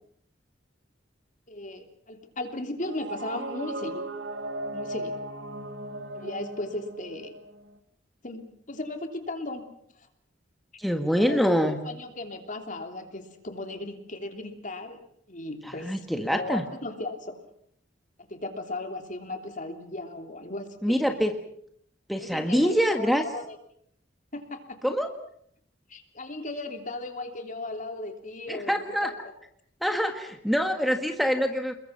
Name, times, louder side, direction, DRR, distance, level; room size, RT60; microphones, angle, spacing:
voice 1, 1.5-4.0 4.7-5.2 6.1-7.4 8.2-9.6 10.0-10.1 11.0-15.0 15.3-16.1 16.3-17.4 18.2-21.2 22.1-23.6 24.3-24.8 25.9-29.3, left 2 dB, 45° left, 5 dB, 3.0 m, -36 dB
sound 1, 2.8-7.8, right 2 dB, 80° right, 2.1 m, -37 dB
voice 2, 10.8-11.8 15.8-16.6 20.8-21.3 22.1-23.2 24.8-25.1 28.5-29.1 29.8-31.7, equal, ahead, 4 dB, 1.6 m, -25 dB
29.5 x 21.5 x 5.8 m, 0.66 s
head